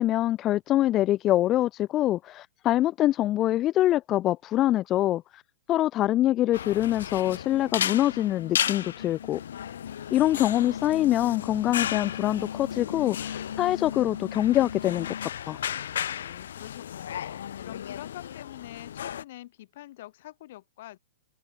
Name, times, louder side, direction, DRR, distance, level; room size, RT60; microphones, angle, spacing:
voice 1, 0.0-5.4 5.7-9.4 10.1-15.6, left 14 dB, 20° left, 0.3 m, -24 dB
sound 1, 6.5-19.2, left 9 dB, 65° left, 1.6 m, -35 dB
sound 2, 7.1-15.3, left 8 dB, 85° left, 0.8 m, -40 dB
voice 2, 16.2-21.0, left 15 dB, 45° left, 7.0 m, -45 dB
hypercardioid pair, 170°, 0 cm